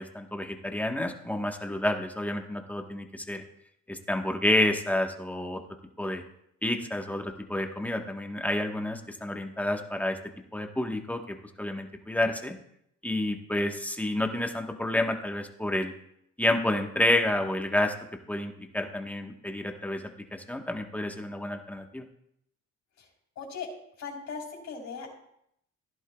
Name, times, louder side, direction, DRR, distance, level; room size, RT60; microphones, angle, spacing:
voice 1, 0.0-3.4 3.9-5.6 6.0-6.2 6.6-10.2 10.5-12.6 13.0-15.9 16.4-17.9 18.3-20.0 20.3-22.0, left 1 dB, 5° left, 3 dB, 1.3 m, -29 dB
voice 2, 23.4-23.7 24.0-25.1, left 5 dB, 65° left, -2 dB, 4.0 m, -38 dB
16.0 x 11.0 x 2.4 m, 0.75 s
cardioid pair, 90°, 30 cm